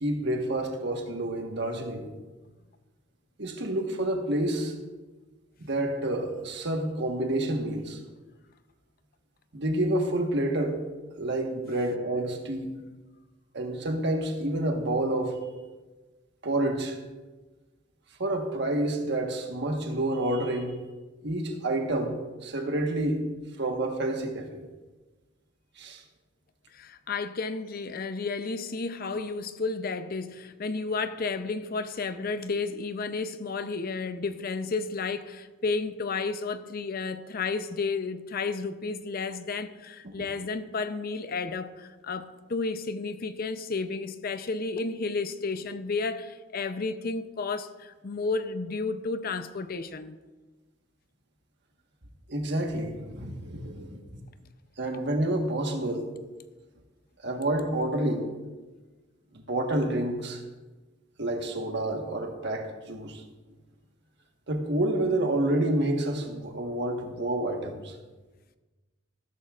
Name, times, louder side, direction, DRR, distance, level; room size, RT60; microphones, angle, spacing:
voice 1, 0.0-2.1 3.4-4.7 5.6-8.0 9.5-10.8 11.1-12.7 13.5-15.4 16.4-17.0 18.2-20.8 21.2-23.2 23.6-24.7 25.8-26.0 52.3-54.2 54.8-56.1 57.2-58.3 59.5-60.4 61.2-63.2 64.5-68.0, right 1 dB, 60° right, 1.4 m, -29 dB
voice 2, 26.7-50.2, left 4 dB, 50° left, 0.6 m, -32 dB
14.0 x 12.5 x 2.5 m
head